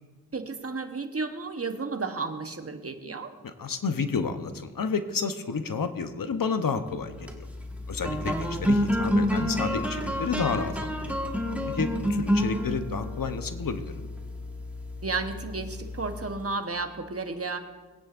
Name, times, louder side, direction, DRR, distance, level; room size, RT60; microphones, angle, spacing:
voice 1, 0.3-3.3 15.0-17.6, right 4 dB, 40° right, 7 dB, 1.1 m, -32 dB
voice 2, 3.4-7.5 7.9-11.1 11.7-14.1, left 5 dB, 65° left, 8 dB, 0.9 m, -31 dB
sound 1, 7.1-16.7, equal, 5° right, 1.4 m, -29 dB
20.5 x 9.7 x 2.5 m, 1.3 s
cardioid pair, 55°, 36 cm